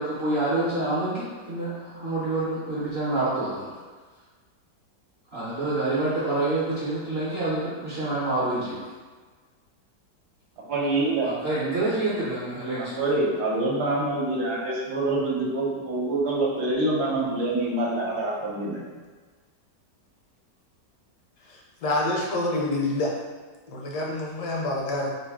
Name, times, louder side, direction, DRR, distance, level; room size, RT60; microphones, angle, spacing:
voice 1, 0.0-3.8 5.3-8.8 11.2-13.0, right 2 dB, 50° right, -9 dB, 0.8 m, -27 dB
voice 2, 10.7-11.3 12.8-18.8, right 2 dB, 70° right, -4 dB, 1.2 m, -26 dB
voice 3, 21.5-23.1 23.7-25.1, left 2 dB, 75° left, -2 dB, 1.1 m, -27 dB
3.0 x 2.6 x 3.5 m, 1.4 s
omnidirectional pair, 1.9 m